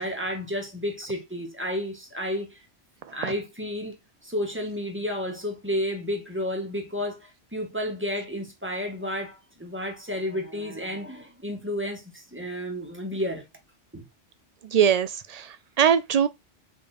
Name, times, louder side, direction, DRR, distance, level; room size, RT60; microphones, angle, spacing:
voice 1, 0.0-2.6 3.1-4.0 4.2-13.4 13.9-14.1, equal, 10° right, 1.9 m, -31 dB
voice 2, 14.7-16.3, right 8 dB, 75° right, 0.3 m, -22 dB
5.4 x 4.5 x 5.1 m
omnidirectional pair, 1.2 m